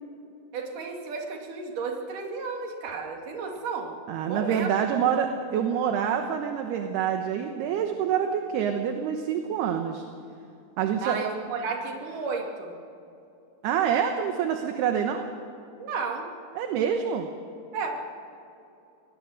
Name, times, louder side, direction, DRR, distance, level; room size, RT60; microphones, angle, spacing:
voice 1, 0.5-3.9 4.3-4.7 11.0-12.7 15.8-16.3 17.7-17.9, right 4 dB, 50° right, 1 dB, 3.5 m, -33 dB
voice 2, 4.1-10.0 10.8-11.2 13.6-15.2 16.6-17.3, right 8 dB, 70° right, 5 dB, 2.8 m, -26 dB
23.5 x 19.0 x 6.5 m, 2.7 s
omnidirectional pair, 5.5 m